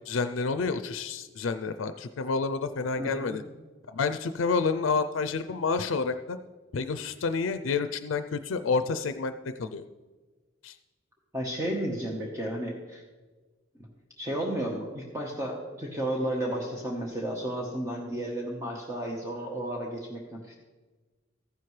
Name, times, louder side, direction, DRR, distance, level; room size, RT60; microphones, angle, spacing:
voice 1, 0.1-3.4 3.9-6.4 6.7-9.3 9.6-9.8 10.6-10.8, left 4 dB, 85° left, 10 dB, 0.5 m, -29 dB
voice 2, 3.0-3.4 11.3-13.0 14.2-20.6, right 1 dB, 15° right, -1 dB, 1.1 m, -33 dB
14.0 x 10.5 x 3.2 m, 1.3 s
head